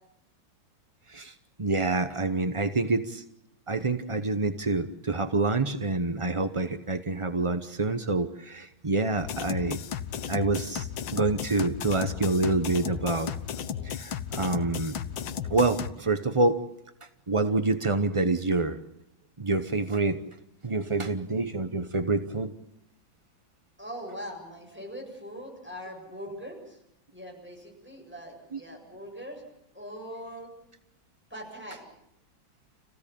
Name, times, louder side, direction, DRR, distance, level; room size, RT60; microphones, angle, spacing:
voice 1, 1.6-3.2 3.7-9.8 10.3-13.3 13.8-15.0 15.5-16.6 17.3-18.8 19.4-20.2 20.6-22.5 28.5-28.6, right 3 dB, 40° right, 9 dB, 0.4 m, -27 dB
sound 1, 9.2-15.9, left 8 dB, 75° left, 1.8 m, -34 dB
voice 2, 23.8-26.8 27.1-29.4 29.7-30.5 31.3-31.9, equal, 5° right, 0 dB, 7.6 m, -41 dB
29.0 x 16.5 x 8.6 m, 0.82 s
omnidirectional pair, 2.2 m